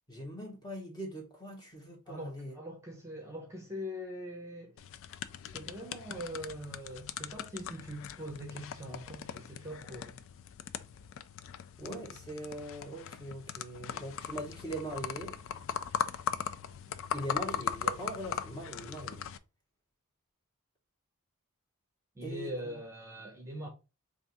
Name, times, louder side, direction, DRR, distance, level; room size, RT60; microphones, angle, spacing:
voice 1, 0.1-2.5 11.8-15.4 17.1-19.3 22.2-22.8, right 1 dB, 20° left, 1.3 m, -41 dB
voice 2, 2.1-4.8 5.5-10.2 22.2-23.7, equal, 15° right, 0.8 m, -42 dB
sound 1, 4.8-19.4, left 8 dB, 60° left, 0.4 m, -39 dB
3.5 x 2.6 x 4.1 m
head